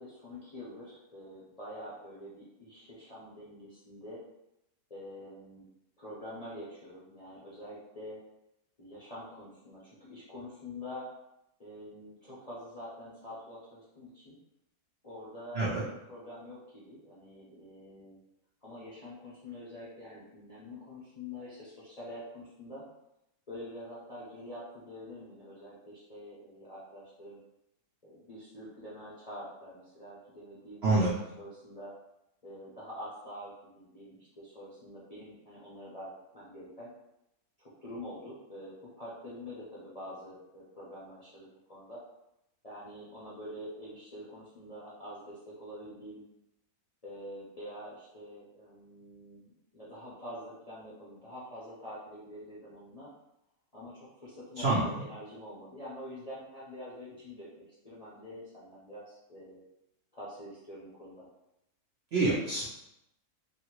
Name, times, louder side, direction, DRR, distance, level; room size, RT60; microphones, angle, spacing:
voice 1, 0.0-4.2 4.9-5.7 6.0-8.2 8.8-11.1 11.6-14.4 15.0-15.6 16.1-18.2 18.6-22.9 23.5-27.4 28.0-31.1 31.4-31.9 32.4-36.9 37.6-42.0 42.6-46.2 47.0-53.1 53.7-59.6 60.1-61.3, left 1 dB, 40° left, -9 dB, 0.6 m, -46 dB
voice 2, 54.6-55.0 62.1-62.7, right 2 dB, 60° right, -7 dB, 0.7 m, -27 dB
2.7 x 2.7 x 3.0 m, 0.86 s
omnidirectional pair, 1.6 m